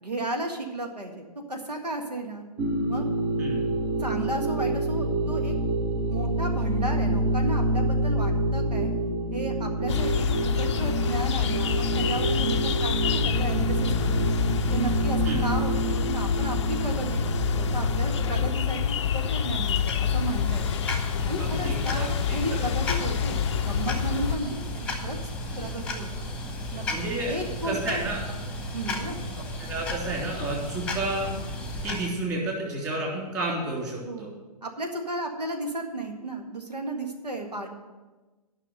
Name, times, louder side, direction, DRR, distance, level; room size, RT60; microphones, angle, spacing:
voice 1, 0.0-2.4 2.9-3.1 4.0-5.6 6.1-8.9 9.3-14.3 14.7-20.7 21.3-26.3 26.7-26.8 27.3-28.0 28.7-29.3 34.0-34.3 34.6-37.7, right 2 dB, 80° right, 3 dB, 1.8 m, -34 dB
sound 1, 2.6-18.5, right 1 dB, 35° right, 0.9 m, -27 dB
sound 2, 9.9-24.4, left 8 dB, 45° left, 0.5 m, -27 dB
sound 3, 19.4-32.1, left 1 dB, 5° left, 1.2 m, -34 dB
voice 2, 21.4-22.7 26.9-27.4 27.6-28.2 29.6-31.3 31.8-34.3, right 2 dB, 15° right, -3 dB, 3.2 m, -31 dB
9.9 x 6.1 x 7.8 m, 1.2 s
figure-of-eight pair, 125°, 20 cm